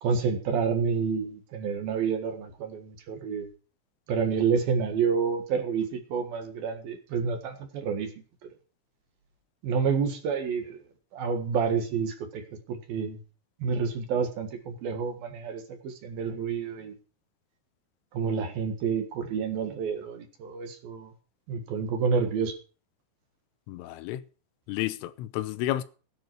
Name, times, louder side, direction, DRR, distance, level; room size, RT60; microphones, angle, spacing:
voice 1, 0.0-3.5 4.1-8.1 9.6-10.8 11.1-12.4 12.7-13.2 13.6-16.9 18.1-21.1 21.5-22.5, right 6 dB, 60° right, 3.0 m, -29 dB
voice 2, 23.7-24.2 24.7-25.8, left 14 dB, 85° left, 3.4 m, -31 dB
17.0 x 9.7 x 4.6 m
omnidirectional pair, 5.5 m